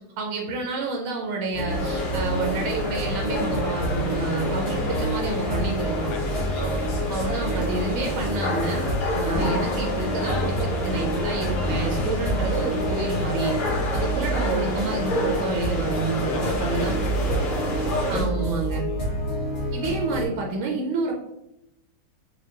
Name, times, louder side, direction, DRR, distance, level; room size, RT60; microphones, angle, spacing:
voice 1, 0.2-6.1 7.1-13.5 13.9-16.9 18.1-18.8 19.7-21.1, right 3 dB, 80° right, 0 dB, 1.4 m, -29 dB
sound 1, 1.5-20.3, equal, 30° left, 0.9 m, -28 dB
sound 2, 1.7-18.2, left 1 dB, 55° left, 1.1 m, -29 dB
voice 2, 6.1-7.0 16.1-18.1 18.8-19.3, left 3 dB, 80° left, 5 dB, 1.4 m, -38 dB
4.4 x 2.2 x 2.9 m, 0.86 s
omnidirectional pair, 2.3 m